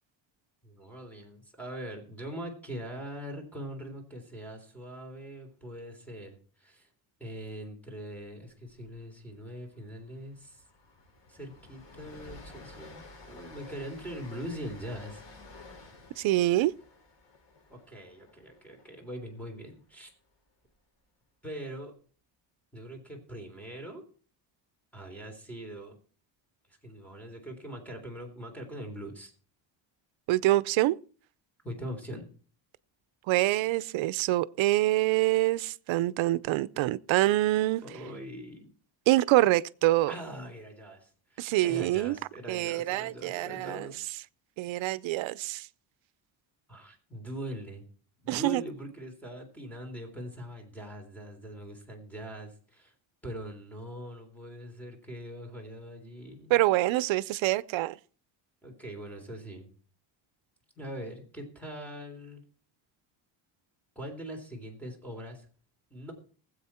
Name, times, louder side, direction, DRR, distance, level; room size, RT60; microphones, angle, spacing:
voice 1, 0.6-6.9 7.2-10.6 11.3-15.2 17.7-20.1 21.4-21.9 22.7-24.0 24.9-26.0 26.8-29.3 31.6-32.3 37.8-38.7 40.1-44.0 46.7-47.9 48.2-52.9 53.2-56.6 58.6-59.7 60.8-62.4 64.0-65.5 65.9-66.1, equal, 5° left, 3.5 m, -42 dB
Train, 8.6-8.9 9.2-9.3 9.7-19.8, left 3 dB, 60° left, 5.8 m, -52 dB
voice 2, 16.2-16.7 30.3-31.0 33.3-37.8 39.1-40.1 41.4-42.2 42.5-43.9 44.6-45.7 48.3-48.6 56.5-58.0, right 16 dB, 75° right, 0.7 m, -25 dB
19.5 x 8.0 x 4.4 m
cardioid pair, 150°, 47 cm